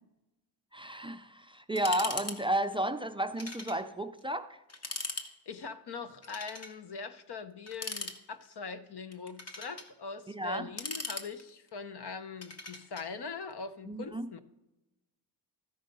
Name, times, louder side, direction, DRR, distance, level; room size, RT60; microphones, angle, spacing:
voice 1, 0.7-4.6 10.3-10.7 13.9-14.3, right 1 dB, 15° right, 8 dB, 0.3 m, -33 dB
sound 1, 1.8-2.4 2.6-2.7 3.4-3.8 4.2-4.3 4.7-5.3 6.2-6.8 7.7-8.5 9.1-9.9 10.5-11.7 12.4-13.1, left 3 dB, 35° left, 1.0 m, -39 dB
voice 2, 5.5-14.4, left 4 dB, 65° left, 11 dB, 0.8 m, -42 dB
13.5 x 5.4 x 5.3 m, 0.98 s
wide cardioid pair, 100°, 42 cm